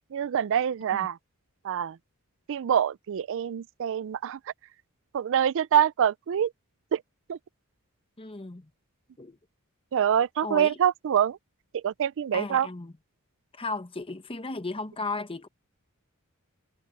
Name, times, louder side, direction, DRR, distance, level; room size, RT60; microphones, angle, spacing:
voice 1, 0.1-1.2 1.6-2.0 2.5-4.5 5.1-6.5 6.9-7.0 7.3-7.4 9.9-11.4 11.7-12.7, right 9 dB, 60° right, 0.4 m, -25 dB
voice 2, 8.2-8.7 9.2-9.4 10.4-10.7 12.3-12.9 13.5-15.5, left 3 dB, 25° left, 1.0 m, -35 dB
head